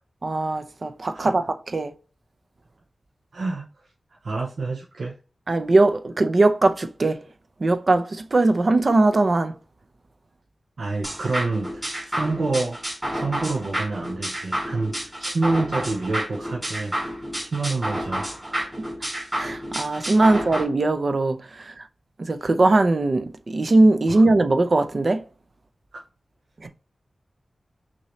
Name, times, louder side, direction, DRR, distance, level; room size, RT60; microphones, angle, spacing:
voice 1, 0.2-1.9 5.5-7.2 7.6-9.5 19.4-21.9 22.2-25.2 26.6-26.7, right 2 dB, 45° right, 0.6 m, -20 dB
voice 2, 3.3-3.7 4.2-5.1 10.8-12.8 13.1-16.9 17.4-18.7 20.3-20.4 24.1-24.2 25.9-26.0, right 3 dB, 80° right, 0.8 m, -28 dB
sound 1, 11.0-20.6, right 1 dB, 10° right, 2.5 m, -30 dB
6.0 x 2.8 x 3.1 m
wide cardioid pair, 120°, 0 cm